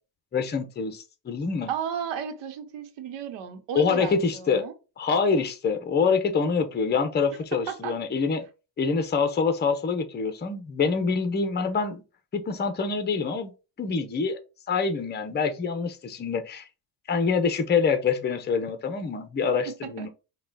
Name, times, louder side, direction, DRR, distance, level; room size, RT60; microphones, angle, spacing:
voice 1, 0.3-1.7 3.7-4.6 5.0-8.4 8.8-12.0 12.3-13.5 13.8-14.4 14.7-16.7 17.1-20.1, left 5 dB, 25° left, 0.8 m, -25 dB
voice 2, 1.7-4.7 7.5-8.0 19.7-20.1, right 8 dB, 85° right, 1.1 m, -34 dB
5.6 x 2.4 x 4.0 m
cardioid pair, 115°, 42 cm